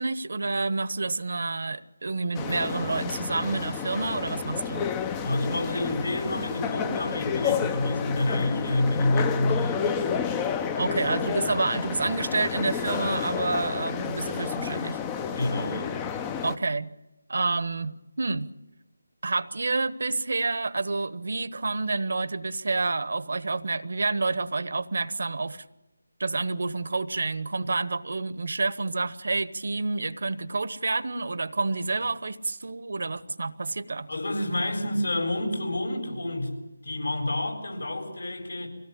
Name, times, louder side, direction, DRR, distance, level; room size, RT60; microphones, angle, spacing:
voice 1, 0.0-4.9 10.8-15.0 16.4-16.9 17.3-18.5 19.2-25.6 26.2-34.1, right 3 dB, 60° right, 15 dB, 1.1 m, -29 dB
sound 1, 2.3-16.6, left 7 dB, 15° left, 0.7 m, -30 dB
voice 2, 5.2-10.0 15.4-16.1 34.1-36.5 36.8-38.7, left 1 dB, 70° left, 2 dB, 7.4 m, -28 dB
24.5 x 17.0 x 8.7 m, 1.0 s
figure-of-eight pair, 155°, 0 cm